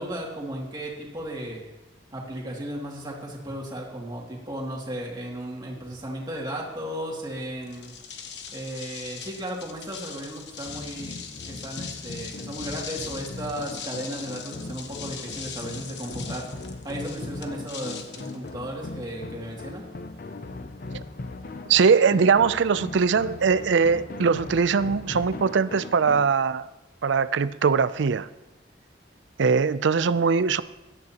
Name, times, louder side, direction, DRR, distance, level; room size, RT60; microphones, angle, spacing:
voice 1, 0.0-1.6 2.1-7.9 8.5-19.8, right 1 dB, 20° right, -2 dB, 2.4 m, -35 dB
sound 1, 7.6-19.1, left 7 dB, 65° left, 1.1 m, -41 dB
sound 2, 10.6-26.3, left 3 dB, 50° left, 0.5 m, -39 dB
voice 2, 21.7-26.6 27.0-28.3 29.4-30.6, right 5 dB, 75° right, 15 dB, 0.4 m, -21 dB
17.0 x 12.0 x 2.9 m, 0.99 s
head